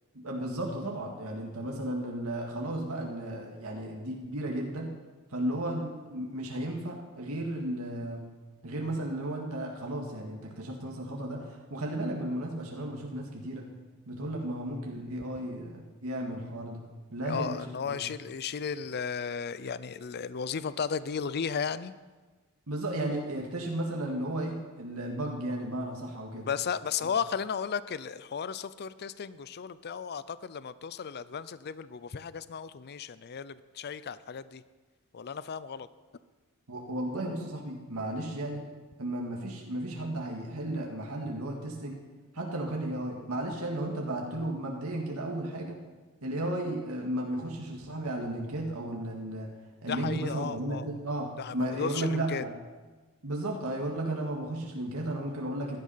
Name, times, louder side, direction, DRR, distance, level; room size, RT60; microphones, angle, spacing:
voice 1, 0.1-5.0 5.3-8.2 8.6-13.7 14.1-16.9 17.1-18.0 22.7-26.5 36.7-38.7 39.0-42.0 42.3-45.8 46.2-49.5 49.8-52.5 53.2-55.8, right 1 dB, 75° right, 0 dB, 2.0 m, -34 dB
voice 2, 17.3-21.9 26.5-34.6 35.1-35.9 49.9-50.8 51.4-52.4, left 6 dB, 50° left, 16 dB, 0.5 m, -35 dB
16.0 x 12.0 x 5.7 m, 1.3 s
head